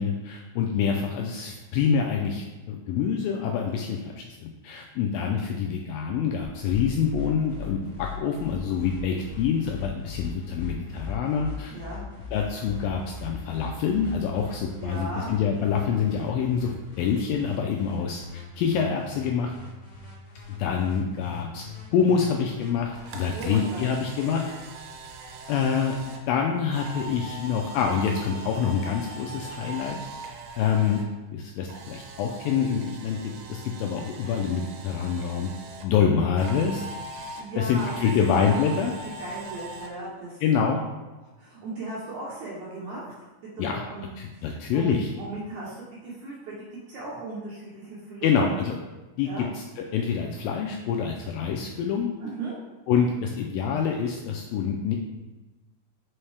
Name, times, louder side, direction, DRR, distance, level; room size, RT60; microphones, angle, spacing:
voice 1, 0.0-11.7 12.3-19.5 20.6-21.6 21.9-24.5 25.5-30.0 30.6-31.0 31.3-35.5 35.8-36.9 37.6-39.0 40.4-40.8 43.6-43.8 44.2-45.1 48.2-48.8 49.2-52.1 52.9-55.0, left 7 dB, 85° left, 1 dB, 2.1 m, -26 dB
sound 1, 6.4-23.9, left 5 dB, 55° left, 1.2 m, -41 dB
voice 2, 11.7-12.0 14.8-15.3 23.3-23.8 37.4-37.9 38.2-38.3 39.0-40.4 41.4-43.1 43.6-44.1 44.4-48.6 49.3-49.5 52.2-52.6, right 2 dB, 70° right, -5 dB, 1.9 m, -37 dB
Camera, 22.7-31.1 31.4-35.8 36.4-39.9, right 3 dB, 85° right, 2.6 m, -41 dB
5.7 x 5.4 x 3.3 m, 1.2 s
omnidirectional pair, 4.5 m